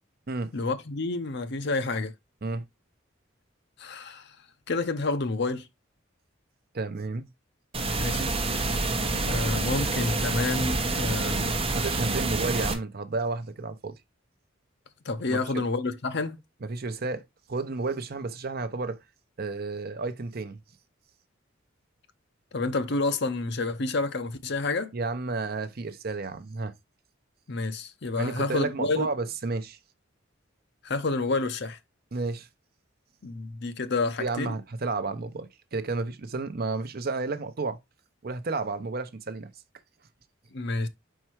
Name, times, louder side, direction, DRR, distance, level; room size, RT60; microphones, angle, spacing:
voice 1, 0.5-2.1 3.8-4.4 4.7-5.7 8.0-8.3 9.2-11.6 15.0-16.4 22.5-24.9 27.5-29.1 30.8-31.8 33.2-34.5 40.5-40.9, left 3 dB, 60° left, 0.7 m, -29 dB
voice 2, 6.7-7.3 11.7-14.0 15.3-15.6 16.6-17.2 17.5-19.0 19.4-20.6 24.9-26.7 28.2-29.8 32.1-32.5 34.2-37.8 38.2-39.5, right 3 dB, 50° right, 0.7 m, -31 dB
sound 1, 7.7-12.7, right 2 dB, 30° right, 1.1 m, -27 dB
4.6 x 4.5 x 4.5 m
head